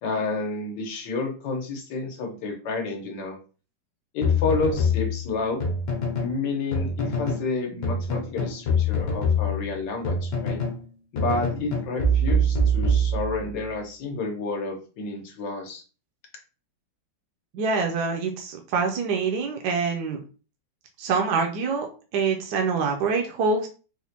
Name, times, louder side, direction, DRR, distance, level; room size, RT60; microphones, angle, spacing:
voice 1, 0.0-3.4 4.1-5.6 6.2-10.6 11.1-15.8, left 3 dB, 90° left, 2 dB, 1.6 m, -30 dB
sound 1, 4.2-6.4 6.7-7.5 7.8-10.8 11.2-13.6, equal, 70° left, 1.4 m, -25 dB
voice 2, 17.5-20.2 21.0-21.9 22.1-23.7, right 5 dB, 75° right, 2 dB, 1.1 m, -25 dB
4.2 x 2.1 x 2.7 m, 0.36 s
omnidirectional pair, 1.9 m